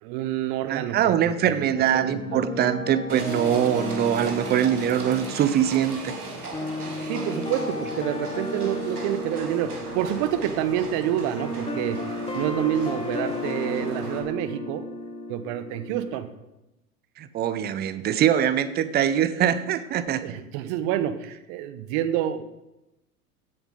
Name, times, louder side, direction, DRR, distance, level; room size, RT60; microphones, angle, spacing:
voice 1, 0.0-2.4 7.1-14.8 15.3-16.3 20.2-22.4, right 11 dB, 40° right, 11 dB, 1.0 m, -28 dB
voice 2, 0.7-6.1 17.2-20.2, right 10 dB, 20° right, 13 dB, 0.6 m, -23 dB
sound 1, 1.8-16.2, left 2 dB, 10° left, 1.1 m, -34 dB
Livestock farm animals working animals, 3.1-14.2, right 3 dB, 85° right, 2.0 m, -38 dB
16.0 x 7.0 x 3.8 m, 0.95 s
figure-of-eight pair, 85°, 44 cm